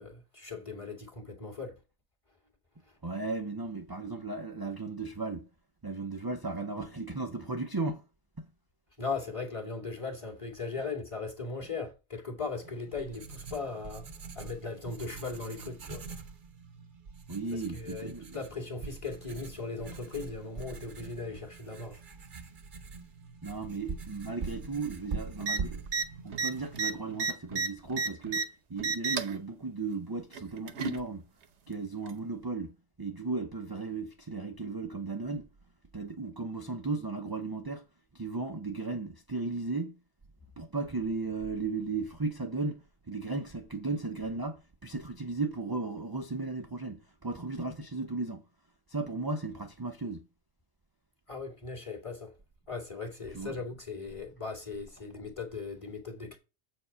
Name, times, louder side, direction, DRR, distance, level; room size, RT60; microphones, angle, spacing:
voice 1, 0.0-1.8 2.8-3.0 9.0-14.1 14.3-16.0 17.5-22.0 51.3-52.3 52.7-56.4, left 4 dB, 25° left, 2.2 m, -38 dB
voice 2, 3.0-5.5 5.8-8.0 8.4-8.5 17.3-18.4 23.4-25.8 26.2-31.2 31.7-35.5 35.9-37.8 38.1-39.9 40.6-48.4 48.9-50.3 53.3-53.5, right 3 dB, 25° right, 0.6 m, -35 dB
Writing, 12.6-27.4, right 4 dB, 45° right, 1.0 m, -43 dB
sound 1, 25.4-25.6 25.9-26.1 26.3-28.5 28.8-29.4 30.3-31.0 32.1-32.2, right 4 dB, 70° right, 1.2 m, -31 dB
7.8 x 4.6 x 5.6 m
omnidirectional pair, 1.2 m